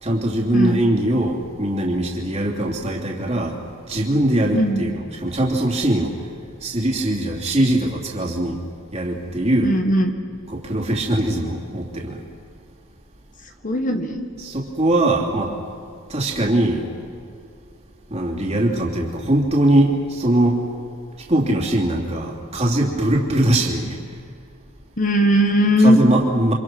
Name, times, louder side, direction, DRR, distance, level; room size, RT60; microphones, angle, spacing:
voice 1, 0.0-3.6 3.9-6.2 6.6-8.6 8.9-9.7 10.5-12.2 14.4-15.5 16.1-16.8 18.1-20.6 21.3-24.0 25.8-26.5, right 1 dB, 30° right, -2 dB, 3.0 m, -21 dB
voice 2, 4.5-4.9 9.6-10.1 13.6-14.3 25.0-26.0, equal, 40° left, 4 dB, 1.6 m, -18 dB
28.5 x 25.5 x 6.2 m, 2.5 s
head